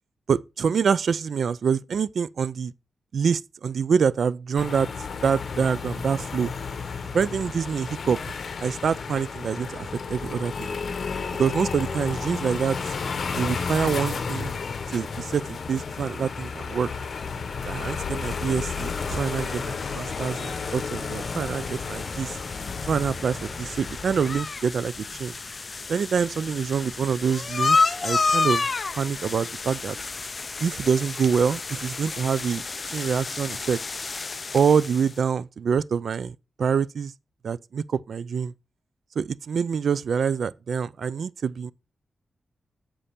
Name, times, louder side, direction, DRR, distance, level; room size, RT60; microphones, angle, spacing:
voice 1, 0.3-2.7 3.1-4.9 5.2-6.5 7.1-8.2 8.6-10.7 11.3-12.8 13.3-14.5 14.9-16.9 17.6-22.4 22.8-25.3 25.9-28.7 28.9-30.0 30.6-33.8 34.5-37.1 37.4-38.5 39.2-41.7, right 6 dB, 65° right, 0.3 m, -26 dB
sound 1, 4.6-24.4, left 5 dB, 55° left, 0.8 m, -32 dB
sound 2, 18.2-35.2, left 4 dB, 35° left, 0.3 m, -31 dB
sound 3, 21.8-25.5, equal, 5° right, 1.3 m, -47 dB
7.4 x 5.1 x 4.1 m
wide cardioid pair, 140°, 0 cm